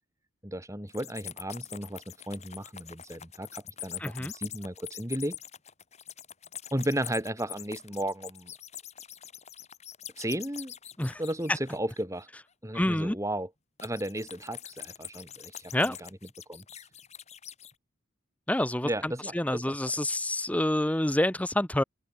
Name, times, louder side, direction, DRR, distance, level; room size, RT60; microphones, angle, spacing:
voice 1, 0.4-5.4 6.7-8.5 10.2-10.7 11.2-12.3 12.6-13.5 13.8-16.1 16.5-16.6 18.8-19.8, right 1 dB, 15° right, 6.1 m, -34 dB
sound 1, 0.9-12.2 13.8-17.7, left 10 dB, 30° left, 3.9 m, -44 dB
voice 2, 4.0-4.3 11.0-11.2 12.7-13.2 15.7-16.0 18.5-21.8, left 1 dB, 5° left, 0.7 m, -28 dB
open air
head